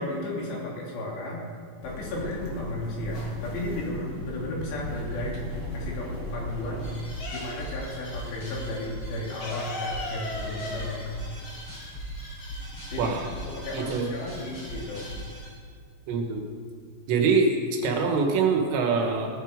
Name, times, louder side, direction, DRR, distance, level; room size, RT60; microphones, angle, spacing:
voice 1, 0.0-1.4 1.8-5.4 5.7-11.1 12.9-13.2 13.4-15.1, left 1 dB, 70° left, -3 dB, 4.8 m, -34 dB
sound 1, 1.8-7.0, left 1 dB, 45° left, 2.1 m, -36 dB
sound 2, 2.0-2.9 3.2-5.2 5.6-8.0 8.2-8.4 8.6-12.2, left 2 dB, 90° left, 1.1 m, -37 dB
sound 3, 6.8-15.5, equal, 30° left, 5.1 m, -39 dB
voice 2, 13.7-14.1 16.1-16.4 17.1-17.5 17.8-19.3, right 5 dB, 75° right, 3 dB, 3.5 m, -24 dB
18.0 x 9.1 x 5.2 m, 2.1 s
omnidirectional pair, 5.2 m